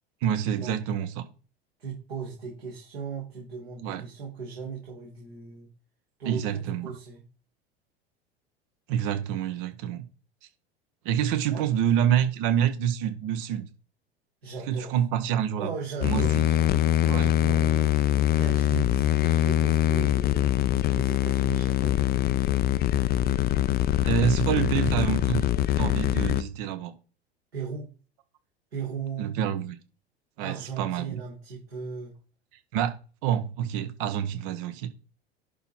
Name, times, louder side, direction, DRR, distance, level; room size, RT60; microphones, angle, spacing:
voice 1, 0.2-1.3 3.8-4.0 6.3-6.9 8.9-10.0 11.0-13.7 14.7-15.7 16.0-16.4 17.0-17.3 24.0-25.5 25.8-26.9 29.2-29.8 30.4-31.2 32.7-32.9 33.2-34.9, right 10 dB, 55° right, 11 dB, 1.4 m, -27 dB
voice 2, 1.8-5.7 6.2-7.2 11.5-11.6 14.4-15.0 15.6-20.5 20.9-22.5 23.3-23.7 27.5-27.9 28.7-29.3 30.4-32.1, right 5 dB, 70° right, -4 dB, 3.7 m, -38 dB
sound 1, 16.0-26.4, left 12 dB, 30° left, 0.6 m, -23 dB
11.0 x 4.2 x 4.4 m, 0.36 s
figure-of-eight pair, 80°, 32 cm